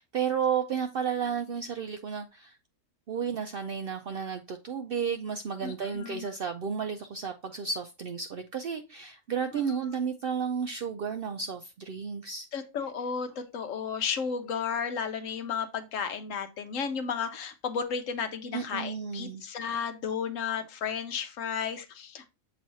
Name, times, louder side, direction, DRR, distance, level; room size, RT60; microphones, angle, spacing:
voice 1, 0.0-2.6 3.1-12.5 18.5-19.4, right 6 dB, 60° right, 0.6 m, -32 dB
voice 2, 5.6-6.2 12.5-22.3, left 6 dB, 80° left, 1.2 m, -33 dB
7.4 x 3.1 x 4.0 m
omnidirectional pair, 1.3 m